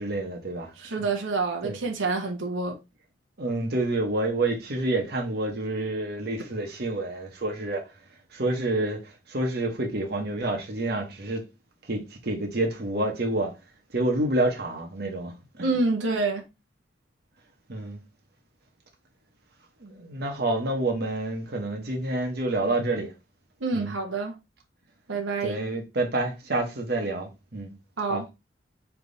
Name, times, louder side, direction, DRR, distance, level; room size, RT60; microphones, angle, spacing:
voice 1, 0.0-1.1 1.6-1.8 3.4-7.9 8.3-11.4 11.9-13.5 13.9-15.8 17.7-18.0 19.8-23.1 23.7-24.0 25.4-27.8 28.1-28.2, right 2 dB, 55° right, 1.0 m, -28 dB
voice 2, 0.8-2.8 15.6-16.4 23.6-24.3 25.1-25.6 28.0-28.2, right 3 dB, 90° right, 0.9 m, -27 dB
3.4 x 2.9 x 3.9 m
head